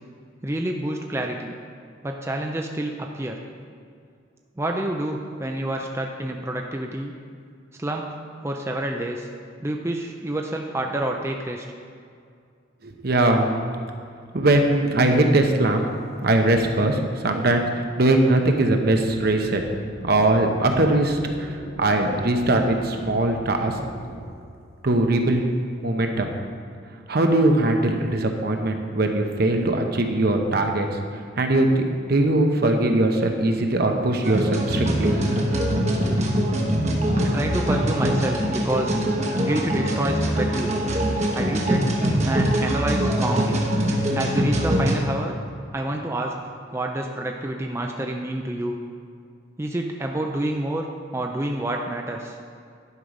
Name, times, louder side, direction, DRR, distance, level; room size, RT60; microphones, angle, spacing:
voice 1, 0.4-1.5 2.0-3.4 4.6-7.1 7.8-8.2 8.4-9.3 9.6-11.6 37.1-39.0 39.4-40.9 41.3-41.9 42.2-43.6 44.1-45.4 45.7-48.8 49.6-50.9 51.1-52.4, right 1 dB, 15° right, 2 dB, 0.5 m, -28 dB
voice 2, 12.8-13.7 14.3-15.9 16.2-19.6 20.0-23.8 24.8-25.4 25.8-26.3 27.1-31.0 31.4-35.4, right 2 dB, 55° right, 4 dB, 0.9 m, -21 dB
sound 1, 19.0-24.3, right 1 dB, 75° left, 1.5 m, -40 dB
sound 2, 34.2-45.0, equal, 35° right, 1.1 m, -23 dB
11.0 x 5.7 x 5.0 m, 2.2 s
head